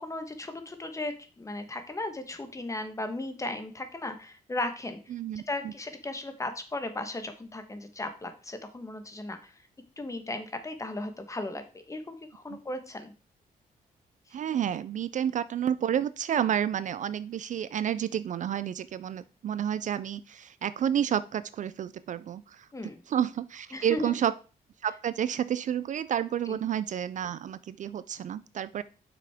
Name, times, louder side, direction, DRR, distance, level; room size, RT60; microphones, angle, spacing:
voice 1, 0.0-5.0 5.5-9.5 10.0-13.1 22.7-23.0 23.7-24.2 26.5-26.6, left 2 dB, 20° left, 8 dB, 1.2 m, -36 dB
voice 2, 5.1-5.7 14.3-22.7 23.1-24.3 24.8-28.8, right 9 dB, 55° right, 15 dB, 0.4 m, -30 dB
7.9 x 5.9 x 3.5 m, 0.36 s
cardioid pair, 115°, 16 cm